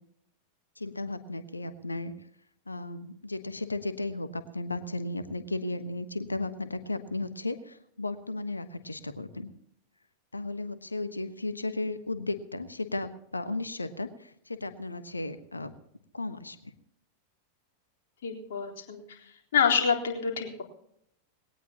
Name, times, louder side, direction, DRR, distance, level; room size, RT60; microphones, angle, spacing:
voice 1, 0.8-2.1 2.7-9.5 10.3-15.7 16.1-16.6, left 2 dB, 80° left, 12 dB, 1.2 m, -35 dB
voice 2, 18.2-20.6, left 6 dB, 60° left, 1 dB, 3.8 m, -28 dB
20.5 x 18.0 x 2.9 m, 0.70 s
figure-of-eight pair, 90°, 0 cm